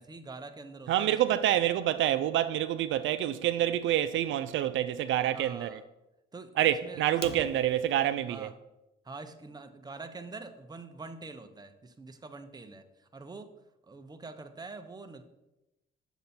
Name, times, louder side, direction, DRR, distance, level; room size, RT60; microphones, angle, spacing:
voice 1, 0.0-1.4 5.3-5.8 6.3-6.5 6.8-7.0 8.3-8.5 9.0-12.9 13.1-13.5 13.8-15.2, right 3 dB, 20° right, 0.9 m, -45 dB
voice 2, 0.9-5.8 6.6-8.5, right 12 dB, 75° right, 0.4 m, -27 dB
Fire, 7.1-8.1, left 7 dB, 55° left, 0.8 m, -45 dB
8.1 x 6.8 x 4.3 m
cardioid pair, 90°, 20 cm